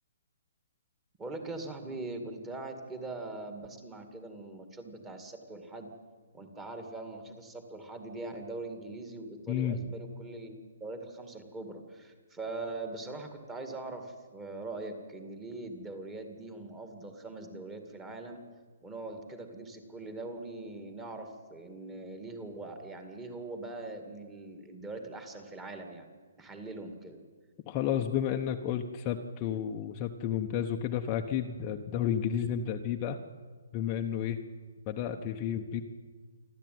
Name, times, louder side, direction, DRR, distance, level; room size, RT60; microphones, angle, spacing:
voice 1, 1.2-5.9 6.3-18.4 18.8-26.1 26.4-27.2, right 2 dB, 10° right, 6 dB, 2.2 m, -42 dB
voice 2, 9.5-9.8 27.7-33.2 33.7-34.4 34.9-35.8, left 9 dB, 25° left, 3 dB, 0.9 m, -31 dB
27.5 x 12.0 x 9.4 m, 1.5 s
hypercardioid pair, 165°, 0 cm